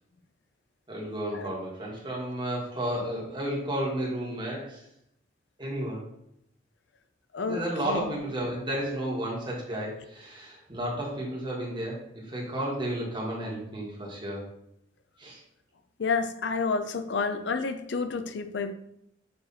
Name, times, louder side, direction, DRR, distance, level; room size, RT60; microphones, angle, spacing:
voice 1, 0.9-4.8 5.6-6.0 7.5-14.4 15.2-15.4, right 1 dB, 25° right, -3 dB, 1.6 m, -32 dB
voice 2, 7.3-8.2 16.0-18.7, left 4 dB, 70° left, 9 dB, 0.5 m, -30 dB
7.0 x 3.3 x 4.1 m, 0.77 s
head